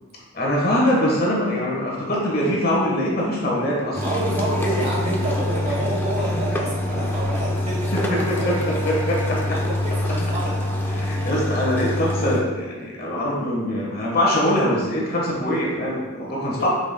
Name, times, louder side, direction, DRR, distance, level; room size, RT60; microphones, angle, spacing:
voice 1, 0.3-4.3 8.3-8.5 8.8-9.6 10.9-16.7, left 1 dB, 45° left, -4 dB, 1.4 m, -23 dB
sound 1, 3.9-12.4, left 1 dB, 10° left, 0.5 m, -25 dB
voice 2, 4.0-8.6 9.5-10.6, right 1 dB, 35° right, -6 dB, 1.9 m, -28 dB
8.1 x 5.4 x 2.2 m, 1.3 s
head